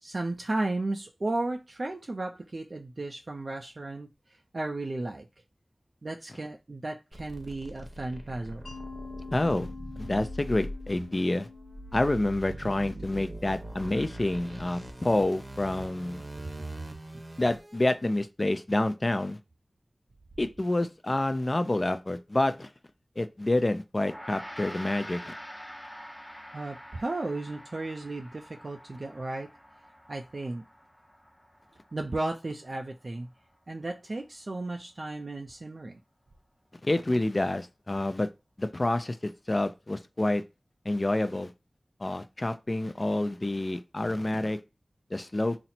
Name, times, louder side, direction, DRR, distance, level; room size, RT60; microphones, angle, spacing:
voice 1, 0.0-5.3 6.0-8.7 26.5-29.5 30.1-30.6 31.9-33.3 33.7-36.0, right 2 dB, 60° right, 0.4 m, -34 dB
sound 1, 7.1-17.9, right 1 dB, 30° right, 0.8 m, -42 dB
Mallet percussion, 8.7-13.4, left 4 dB, 75° left, 1.1 m, -47 dB
voice 2, 9.3-9.7 10.0-11.5 11.9-16.2 17.4-19.4 20.4-22.7 23.2-25.3 36.8-38.3 38.6-40.4 40.9-41.5 42.0-44.6 45.1-45.6, left 1 dB, 35° left, 0.4 m, -28 dB
Gong, 24.0-33.5, equal, 10° left, 0.9 m, -47 dB
4.1 x 2.0 x 4.2 m
wide cardioid pair, 70°, 0 cm